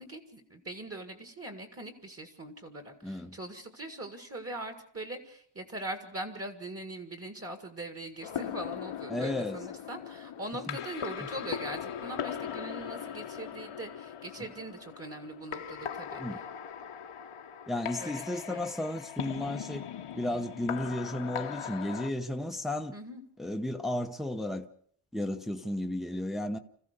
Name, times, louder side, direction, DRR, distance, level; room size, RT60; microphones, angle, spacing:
voice 1, 0.0-16.4 18.0-18.7 22.9-23.2, right 1 dB, 30° right, 2.0 m, -41 dB
voice 2, 3.0-3.4 9.1-9.6 10.7-10.8 16.2-16.4 17.7-19.9 20.1-22.9 23.4-24.7 25.1-26.6, left 1 dB, ahead, 0.8 m, -33 dB
sound 1, 8.2-22.1, left 8 dB, 85° left, 1.4 m, -39 dB
26.5 x 15.0 x 6.7 m
wide cardioid pair, 170°, 49 cm